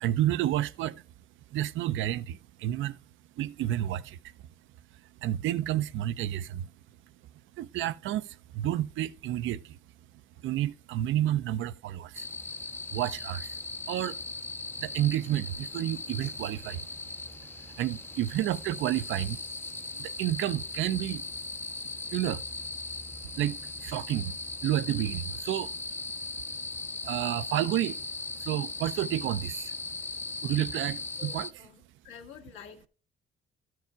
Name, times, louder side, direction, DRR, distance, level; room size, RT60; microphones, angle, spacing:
voice 1, 0.0-1.0 1.5-3.0 3.4-4.2 5.2-6.7 7.6-9.8 10.4-12.3 12.9-13.6 13.9-14.2 14.8-16.9 17.8-19.4 19.9-21.2 22.1-22.4 23.4-24.4 24.6-25.7 27.0-28.0 28.4-29.7 30.4-31.5, right 13 dB, 80° right, 0.5 m, -30 dB
sound 1, 12.1-31.5, left 3 dB, 10° left, 0.4 m, -39 dB
voice 2, 31.2-32.9, left 8 dB, 85° left, 1.8 m, -49 dB
13.0 x 4.8 x 4.5 m
cardioid pair, 90°, 20 cm